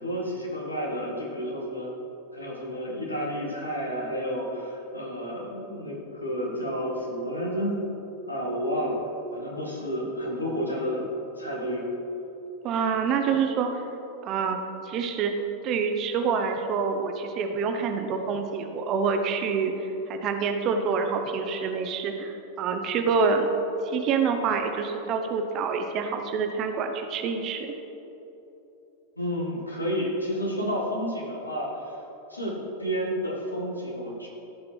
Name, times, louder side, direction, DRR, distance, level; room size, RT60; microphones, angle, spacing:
voice 1, 0.0-1.9 2.3-7.8 8.3-9.0 9.3-11.0 11.4-11.9 29.2-32.0 32.3-34.3, equal, 85° left, -2 dB, 1.8 m, -30 dB
voice 2, 12.6-13.8 14.2-14.6 14.8-15.3 15.6-19.7 20.1-23.5 23.8-27.7, right 5 dB, 35° right, 5 dB, 0.9 m, -27 dB
15.0 x 5.1 x 4.5 m, 3.0 s
figure-of-eight pair, 90°, 0 cm